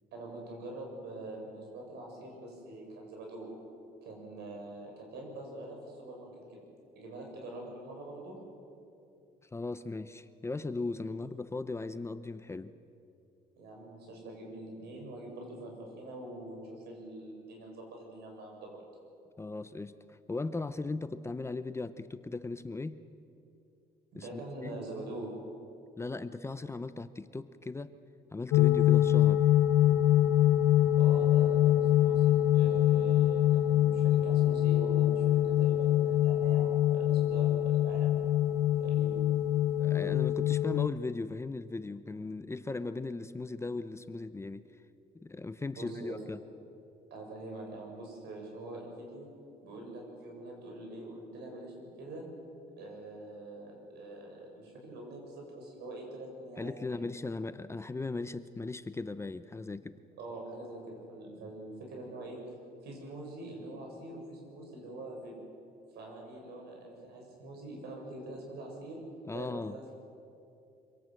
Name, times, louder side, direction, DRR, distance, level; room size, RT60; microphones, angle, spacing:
voice 1, 0.1-3.5 4.0-6.6 7.0-8.4 13.6-18.8 24.1-25.4 30.8-38.1 38.8-39.2 45.7-46.2 47.1-49.3 49.6-52.2 52.8-56.8 60.2-62.4 62.8-65.3 65.9-69.0 69.3-69.8, right 2 dB, 75° right, 0 dB, 7.2 m, -44 dB
voice 2, 9.5-12.7 19.4-23.0 24.2-24.3 24.6-24.8 26.0-27.9 28.3-29.4 39.8-44.7 45.2-46.4 56.6-60.0 69.3-69.8, left 3 dB, 15° left, 12 dB, 0.7 m, -38 dB
sound 1, 28.5-40.9, left 12 dB, 75° left, 0.6 m, -25 dB
25.0 x 17.5 x 7.8 m, 2.6 s
cardioid pair, 110°, 17 cm